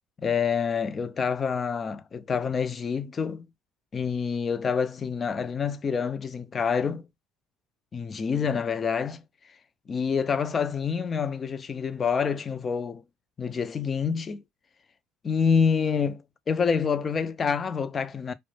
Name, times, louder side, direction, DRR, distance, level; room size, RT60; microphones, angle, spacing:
voice 1, 0.2-3.5 3.9-7.1 7.9-9.2 9.9-13.0 13.4-14.4 15.2-18.3, left 6 dB, 35° left, 0.4 m, -27 dB
2.1 x 2.0 x 3.1 m
supercardioid pair, 80°, 0 cm